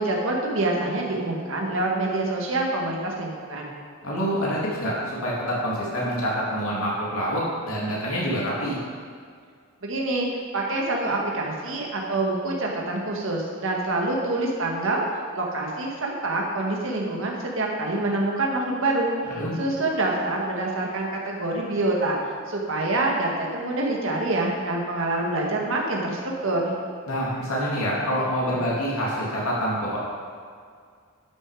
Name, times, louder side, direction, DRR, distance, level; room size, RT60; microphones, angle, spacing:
voice 1, 0.0-3.7 9.8-10.3 10.5-22.2 22.5-26.8, right 2 dB, 65° right, -1 dB, 1.8 m, -26 dB
voice 2, 4.0-8.8 19.3-19.5 27.1-30.0, equal, 85° left, -6 dB, 2.6 m, -26 dB
11.5 x 6.5 x 4.9 m, 2.1 s
head